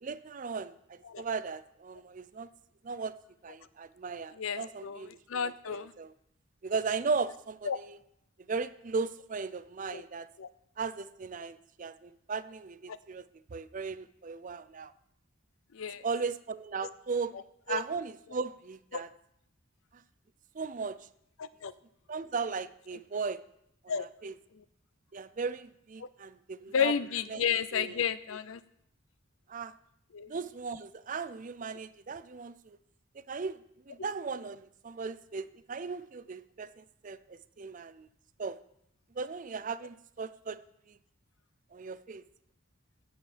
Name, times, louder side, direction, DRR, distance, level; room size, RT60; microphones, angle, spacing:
voice 1, 0.0-2.5 2.8-3.1 3.4-6.1 6.6-8.0 8.5-10.3 10.8-13.2 13.5-14.9 16.0-17.4 17.7-19.1 20.5-21.1 22.1-23.4 23.9-24.3 25.1-26.9 27.3-27.4 27.7-27.9 29.5-29.7 30.3-32.8 33.2-33.6 33.9-38.1 38.4-38.6 39.2-40.6 40.9-41.0 41.7-42.3, right 4 dB, 40° right, 14 dB, 0.4 m, -37 dB
voice 2, 4.3-5.9 7.6-7.8 9.9-10.0 10.4-10.5 12.9-13.0 15.7-16.1 17.3-17.4 17.7-17.8 18.9-19.0 21.4-21.7 23.9-24.1 24.5-24.6 26.0-26.1 26.7-28.6 30.1-30.3, left 7 dB, 75° left, 15 dB, 0.5 m, -32 dB
8.3 x 7.9 x 7.2 m, 0.75 s
head